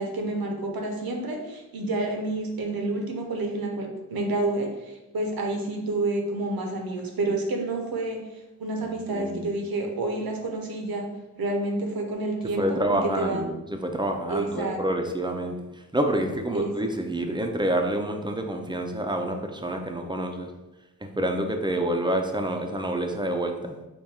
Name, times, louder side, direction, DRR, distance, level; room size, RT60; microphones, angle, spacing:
voice 1, 0.0-11.1 11.4-13.4 14.3-14.8 16.5-16.7, right 2 dB, 85° right, 2 dB, 0.8 m, -29 dB
voice 2, 8.8-9.5 12.6-20.5 21.2-23.7, right 1 dB, 15° right, 3 dB, 0.3 m, -28 dB
3.5 x 2.3 x 4.1 m, 1.0 s
wide cardioid pair, 120°, 35 cm